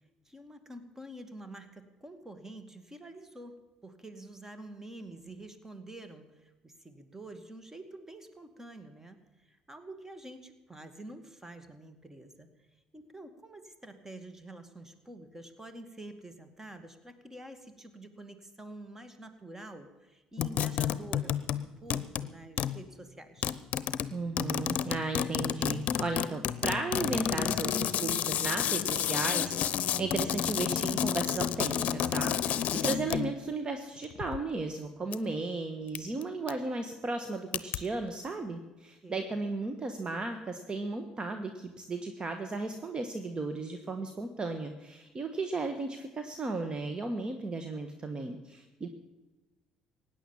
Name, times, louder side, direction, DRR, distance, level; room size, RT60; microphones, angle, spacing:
voice 1, 0.3-12.7 12.9-23.6 39.0-39.4, right 1 dB, 15° right, 9 dB, 2.2 m, -48 dB
sound 1, 20.4-21.6 21.9-22.3 22.6-22.8 23.4-33.4 34.0-34.4 35.1-35.2 35.9-36.2 36.5-36.6 37.5-37.8, left 9 dB, 55° left, 0.8 m, -30 dB
voice 2, 24.1-48.9, right 3 dB, 30° right, 7 dB, 1.4 m, -35 dB
16.5 x 9.9 x 7.3 m, 1.1 s
hypercardioid pair, 65°, 3 cm